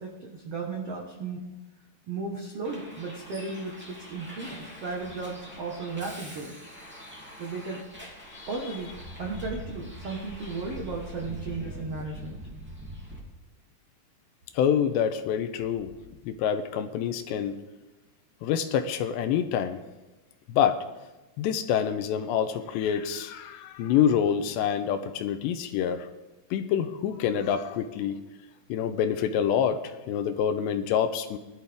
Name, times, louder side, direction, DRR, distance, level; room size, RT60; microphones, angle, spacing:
voice 1, 0.0-1.4 2.1-6.5 7.4-7.8 8.5-8.9 9.2-12.4, right 3 dB, 70° right, -1 dB, 1.4 m, -35 dB
Bus, 2.6-13.2, equal, 5° right, 1.7 m, -43 dB
voice 2, 14.5-15.9 16.2-17.6 18.4-19.8 20.5-20.8 21.4-26.1 26.5-28.2 28.7-31.4, left 8 dB, 85° left, 8 dB, 2.9 m, -26 dB
21.0 x 12.5 x 3.6 m, 1.1 s
omnidirectional pair, 5.2 m